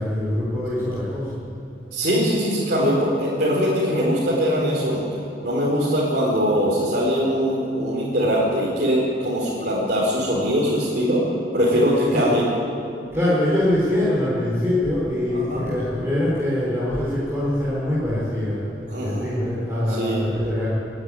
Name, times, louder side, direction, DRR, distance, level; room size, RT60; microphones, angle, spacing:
voice 1, 0.0-1.3 11.7-12.3 13.1-18.6 19.0-20.7, left 1 dB, 15° right, -8 dB, 4.4 m, -23 dB
voice 2, 1.9-5.0 5.4-11.2 11.5-12.5 15.3-15.7 18.9-19.2 19.9-20.2, equal, 55° right, -7 dB, 4.3 m, -21 dB
27.0 x 10.0 x 9.8 m, 2.6 s
head